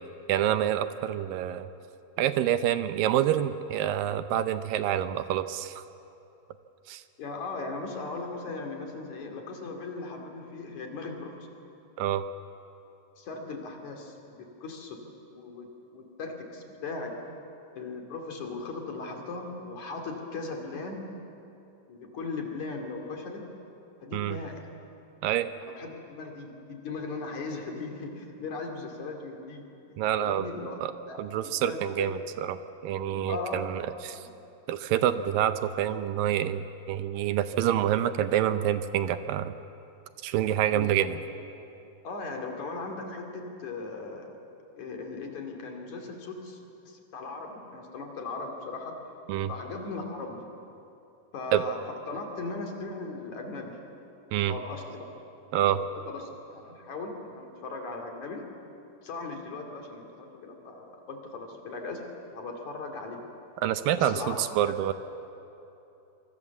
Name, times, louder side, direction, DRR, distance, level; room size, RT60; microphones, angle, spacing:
voice 1, 0.3-1.7 2.2-5.8 6.9-7.0 12.0-12.2 24.1-24.4 25.2-25.5 30.0-30.5 30.8-30.9 31.2-32.6 32.8-34.2 34.7-39.5 40.2-41.1 49.3-49.5 51.5-51.6 54.3-54.5 55.5-55.8 63.6-64.9, right 11 dB, 80° right, 11 dB, 2.4 m, -27 dB
voice 2, 7.2-11.5 13.2-15.0 15.3-17.2 17.7-21.1 21.9-23.4 24.0-24.6 25.6-29.6 30.2-30.8 31.1-32.1 33.3-33.6 33.9-34.3 40.7-41.1 42.0-44.4 44.8-49.0 49.5-50.4 51.3-51.8 52.1-53.8 54.4-55.1 55.7-58.5 59.0-63.2 64.0-64.7, left 3 dB, 55° left, 2 dB, 3.7 m, -38 dB
26.0 x 24.0 x 7.2 m, 2.8 s
omnidirectional pair, 4.2 m